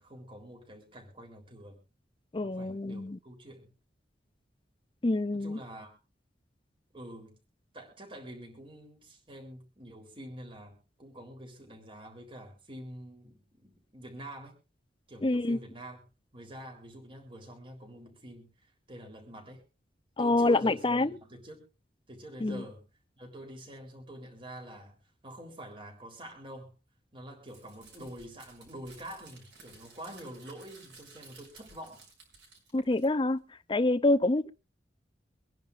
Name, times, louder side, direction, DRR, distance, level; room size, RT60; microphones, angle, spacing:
voice 1, 0.0-1.8 2.4-3.7 5.3-6.0 6.9-7.3 7.7-14.5 15.1-16.0 16.3-19.6 20.2-21.7 22.1-22.8 23.2-26.7 27.1-32.1, right 1 dB, 30° right, 3.8 m, -47 dB
voice 2, 2.3-3.2 5.0-5.6 15.2-15.6 20.2-21.2 22.4-22.6 32.7-33.4 33.7-34.5, left 2 dB, 30° left, 0.6 m, -26 dB
Crumpling crinkling, 27.5-33.4, right 4 dB, 85° right, 6.6 m, -56 dB
25.0 x 10.5 x 2.6 m
head